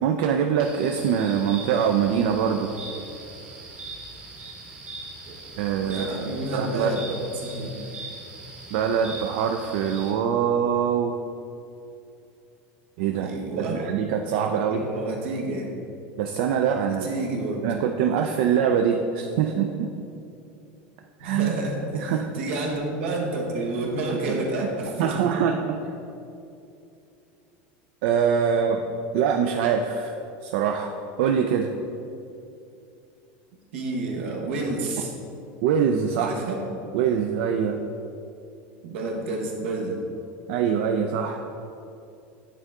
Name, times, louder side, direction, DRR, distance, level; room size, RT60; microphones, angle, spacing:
voice 1, 0.0-2.7 5.6-6.1 6.5-6.9 8.7-11.2 13.0-13.3 13.6-14.8 16.2-17.0 17.6-19.9 21.2-21.5 21.9-22.3 24.3-24.4 25.0-25.8 28.0-28.8 29.1-30.1 30.4-30.9 31.2-31.7 35.6-36.3 36.9-37.8 40.5-41.4, right 7 dB, 65° right, 4 dB, 0.4 m, -23 dB
sound 1, 0.6-10.1, right 3 dB, 20° right, 0.9 m, -41 dB
voice 2, 5.7-7.7 13.1-13.8 14.7-15.7 17.0-17.6 21.2-25.4 33.7-35.1 36.2-36.6 38.8-40.0, right 2 dB, 80° right, 0 dB, 1.1 m, -29 dB
9.1 x 3.6 x 3.6 m, 2.7 s
supercardioid pair, 150°, 6 cm